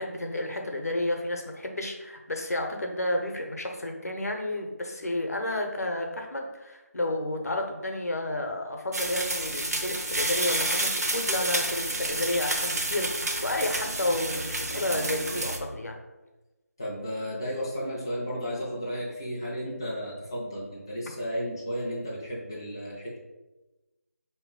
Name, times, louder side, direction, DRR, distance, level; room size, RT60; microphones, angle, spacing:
voice 1, 0.0-16.0, left 1 dB, 70° left, 3 dB, 0.9 m, -31 dB
sound 1, 8.9-15.6, right 2 dB, 75° right, 0.8 m, -30 dB
voice 2, 16.8-23.2, equal, 15° left, -6 dB, 0.4 m, -33 dB
4.5 x 2.9 x 3.7 m, 1.1 s
figure-of-eight pair, 175°, 9 cm